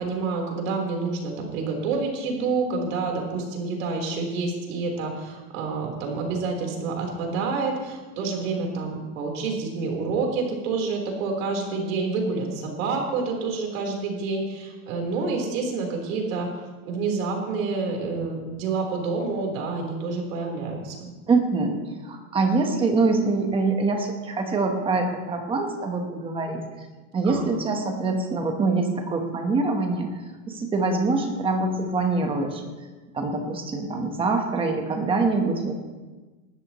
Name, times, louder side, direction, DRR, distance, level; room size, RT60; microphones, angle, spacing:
voice 1, 0.0-16.5 16.8-21.1 27.2-27.5, right 4 dB, 75° right, 1 dB, 4.0 m, -28 dB
voice 2, 21.3-26.6 27.1-30.2 30.5-32.6 33.1-35.7, right 3 dB, 15° right, 4 dB, 1.2 m, -24 dB
19.0 x 13.0 x 3.1 m, 1.2 s
supercardioid pair, 175°, 40 cm